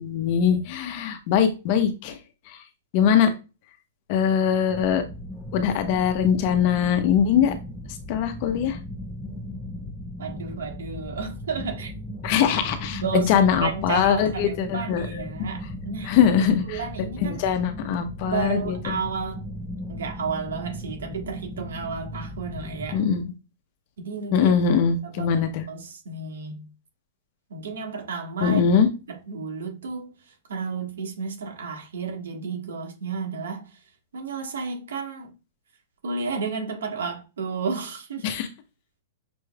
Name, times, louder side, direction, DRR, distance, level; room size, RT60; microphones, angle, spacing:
voice 1, 0.0-2.2 2.5-2.6 2.9-3.3 4.1-5.0 5.5-7.6 8.1-8.8 12.2-15.3 16.0-16.8 17.2-19.0 22.9-23.2 24.3-25.6 28.4-28.9 38.2-38.5, left 7 dB, 45° left, 0.8 m, -22 dB
sound 1, 4.7-23.0, left 1 dB, ahead, 0.8 m, -37 dB
voice 2, 10.2-11.9 12.9-17.4 18.2-19.5 19.9-23.0 24.0-24.5 25.0-26.7 27.5-28.6 29.1-33.8 34.1-35.3 36.0-38.3, right 5 dB, 85° right, 1.5 m, -32 dB
6.1 x 3.1 x 2.3 m
hypercardioid pair, 145°, 0 cm